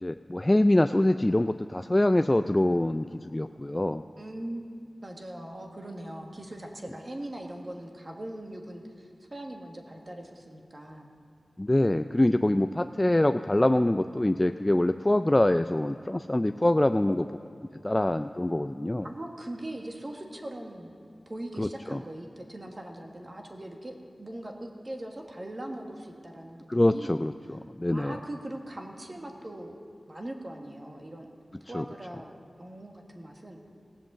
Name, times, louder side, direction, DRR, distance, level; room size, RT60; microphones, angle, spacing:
voice 1, 0.0-4.0 11.6-17.2 17.8-19.1 21.6-22.0 26.7-28.2 31.7-31.8, left 1 dB, 25° left, 9 dB, 0.3 m, -24 dB
voice 2, 4.2-11.1 17.0-17.1 19.0-21.0 21.2-27.2 27.9-29.8 30.1-31.3 31.7-33.6, right 1 dB, 40° right, 1 dB, 1.5 m, -41 dB
16.5 x 7.6 x 7.3 m, 2.5 s
wide cardioid pair, 50°, 0 cm